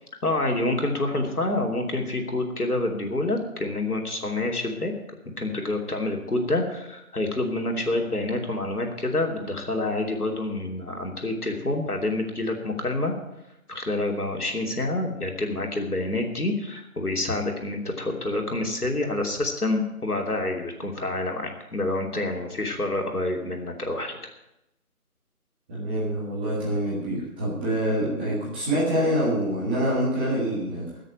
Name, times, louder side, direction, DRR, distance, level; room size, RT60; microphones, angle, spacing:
voice 1, 0.2-4.9 5.4-13.1 13.7-24.2, left 2 dB, 80° left, 2 dB, 3.1 m, -27 dB
voice 2, 25.7-30.9, right 1 dB, 5° right, -9 dB, 1.7 m, -26 dB
15.0 x 6.7 x 9.2 m, 0.89 s
figure-of-eight pair, 160°, 45 cm